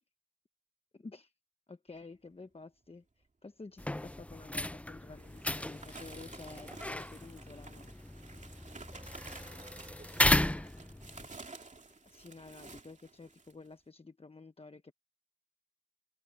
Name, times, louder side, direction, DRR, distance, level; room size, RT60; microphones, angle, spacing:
voice 1, 0.9-1.3 1.7-7.9 12.0-14.9, left 3 dB, 45° left, 1.1 m, -51 dB
sound 1, 3.8-11.3, left 1 dB, 10° left, 0.5 m, -35 dB
sound 2, 5.0-13.7, right 3 dB, 60° right, 2.7 m, -52 dB
voice 2, 9.3-10.9, right 4 dB, 80° right, 5.2 m, -61 dB
cardioid pair, 45°, 14 cm